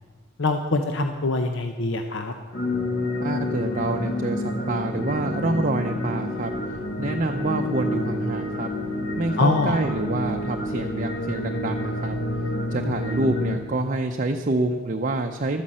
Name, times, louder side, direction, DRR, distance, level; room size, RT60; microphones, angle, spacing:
voice 1, 0.4-2.3 9.4-9.8, left 2 dB, 60° left, 6 dB, 0.8 m, -24 dB
sound 1, 2.5-13.6, left 1 dB, 40° left, 1.7 m, -28 dB
voice 2, 3.2-6.5 7.0-8.7 9.2-12.2 12.7-15.6, right 2 dB, 40° right, 4 dB, 0.6 m, -27 dB
13.0 x 9.7 x 7.6 m, 1.4 s
head